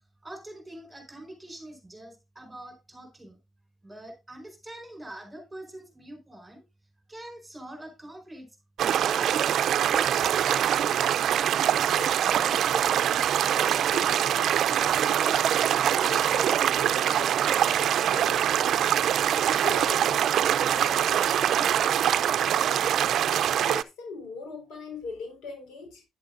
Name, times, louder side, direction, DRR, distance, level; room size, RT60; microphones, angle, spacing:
voice 1, 0.2-3.4 3.8-6.6 7.1-8.5, right 1 dB, 10° right, 4.7 m, -44 dB
sound 1, 8.8-23.8, right 10 dB, 70° right, 0.5 m, -24 dB
voice 2, 11.9-18.8 19.5-23.1 23.6-26.0, left 4 dB, 85° left, 4.2 m, -41 dB
10.5 x 10.0 x 2.5 m
cardioid pair, 90°, 0 cm